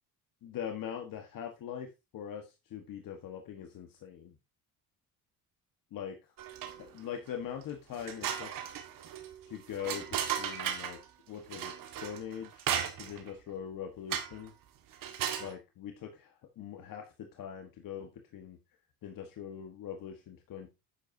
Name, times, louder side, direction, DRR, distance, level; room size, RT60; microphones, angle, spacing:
voice 1, 0.4-4.3 5.9-6.2 6.8-8.5 9.5-10.1 10.4-11.0 11.3-11.7 12.0-12.6 13.0-14.5 15.4-18.6 19.0-20.7, left 8 dB, 65° left, 4 dB, 1.6 m, -42 dB
sound 1, 6.4-7.0 7.4-7.5 7.9-11.0 11.5-13.3 14.1-14.5 14.9-15.5, right 9 dB, 65° right, 1.8 m, -36 dB
9.9 x 8.0 x 2.8 m, 0.25 s
cardioid pair, 115°, 36 cm